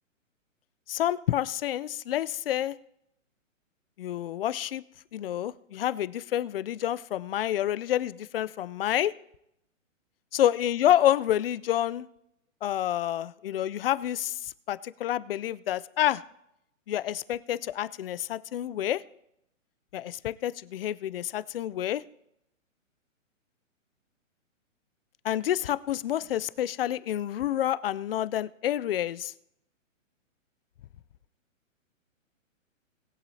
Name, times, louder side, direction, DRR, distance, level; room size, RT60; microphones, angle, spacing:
voice 1, 0.9-2.7 4.0-4.8 5.1-9.1 10.3-12.0 12.6-14.3 14.7-16.2 16.9-19.0 19.9-22.0 25.2-29.3, left 12 dB, 45° left, 17 dB, 0.5 m, -28 dB
21.0 x 8.0 x 2.8 m, 0.80 s
hypercardioid pair, 145°, 40 cm